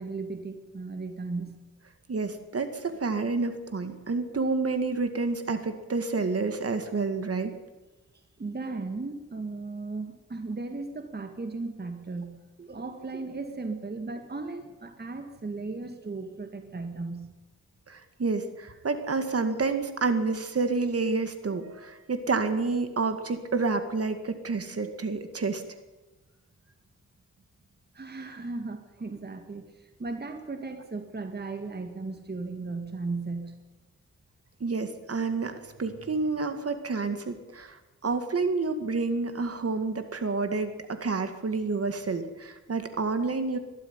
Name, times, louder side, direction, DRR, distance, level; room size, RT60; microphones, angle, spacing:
voice 1, 0.0-1.6 8.4-17.3 27.9-33.6, right 3 dB, 35° right, 6 dB, 1.9 m, -36 dB
voice 2, 2.1-7.5 17.9-25.6 34.6-43.6, right 4 dB, 55° right, 8 dB, 2.2 m, -29 dB
22.5 x 13.0 x 9.7 m, 1.1 s
wide cardioid pair, 120°, 29 cm